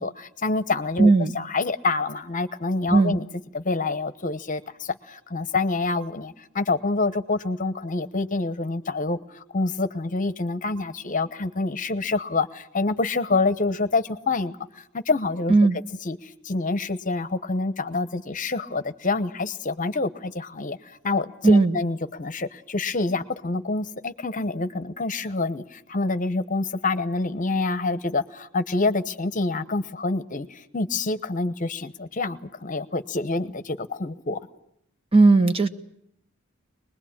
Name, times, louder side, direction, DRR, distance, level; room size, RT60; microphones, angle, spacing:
voice 1, 0.0-3.3 3.5-15.5 16.0-34.4, left 3 dB, 40° left, 12 dB, 1.0 m, -27 dB
voice 2, 1.0-1.4 2.9-3.2 15.5-15.8 21.4-21.8 35.1-35.7, right 3 dB, 25° right, 8 dB, 1.2 m, -17 dB
24.5 x 20.5 x 8.7 m, 0.75 s
head